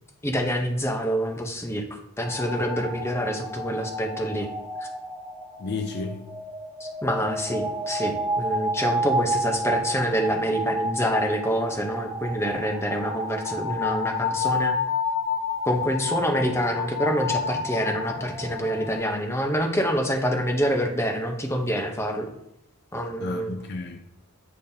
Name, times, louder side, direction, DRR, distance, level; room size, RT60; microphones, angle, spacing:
voice 1, 0.2-4.5 4.8-4.9 6.8-14.7 15.6-22.3 22.9-23.6, equal, 10° left, 0.7 m, -26 dB
sound 1, 2.2-19.0, left 1 dB, 15° right, 1.0 m, -30 dB
voice 2, 5.6-6.3 23.2-24.0, left 3 dB, 50° left, 0.4 m, -32 dB
8.6 x 5.2 x 2.8 m
head